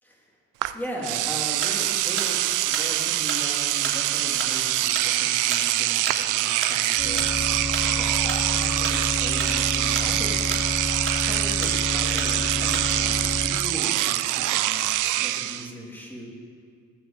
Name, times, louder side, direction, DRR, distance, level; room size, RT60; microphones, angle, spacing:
Engine / Domestic sounds home sounds, 0.6-0.7 1.0-15.7, right 15 dB, 90° right, 0.5 m, -24 dB
voice 1, 0.7-7.2 7.5-10.6 11.2-16.3, equal, 5° left, -2 dB, 3.1 m, -38 dB
sound 1, 1.5-1.8 2.2-7.4 7.7-9.0 9.3-10.8 11.1-11.8 12.2-12.3 12.7-12.9, right 3 dB, 45° right, 3.0 m, -33 dB
sound 2, 7.0-13.5, left 2 dB, 25° left, 3.2 m, -30 dB
17.5 x 6.2 x 7.4 m, 2.1 s
cardioid pair, 90°, 30 cm